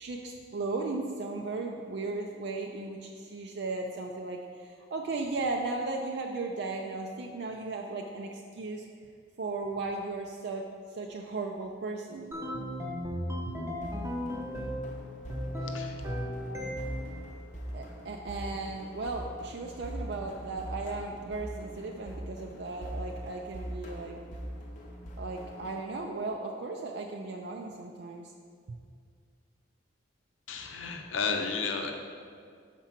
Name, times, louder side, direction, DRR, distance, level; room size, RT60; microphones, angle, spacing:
voice 1, 0.0-8.9 9.4-10.7 10.9-12.3 17.7-24.2 25.2-28.3, right 3 dB, 55° right, 1 dB, 0.4 m, -36 dB
sound 1, 12.3-14.9 15.3-17.2, equal, 15° right, 0.6 m, -35 dB
sound 2, 13.8-25.8, equal, 40° left, 0.7 m, -42 dB
voice 2, 15.6-16.0 30.5-31.9, left 5 dB, 80° left, 4 dB, 0.7 m, -33 dB
5.8 x 4.4 x 5.8 m, 2.2 s
head